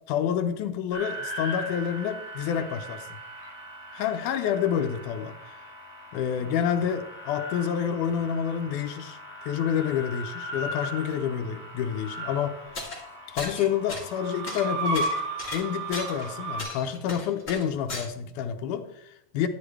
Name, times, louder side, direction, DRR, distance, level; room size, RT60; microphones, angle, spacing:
voice 1, 0.1-3.1 3.9-5.6 6.1-9.2 9.4-12.6 13.3-15.1 15.5-19.5, left 8 dB, 80° left, 6 dB, 2.0 m, -28 dB
sound 1, 0.9-16.6, right 2 dB, 45° right, 3.8 m, -37 dB
sound 2, 12.7-13.0 13.4-14.2 14.5-16.3 16.6-18.1, left 2 dB, 25° left, 2.5 m, -36 dB
12.0 x 10.0 x 3.3 m, 0.77 s
omnidirectional pair, 3.9 m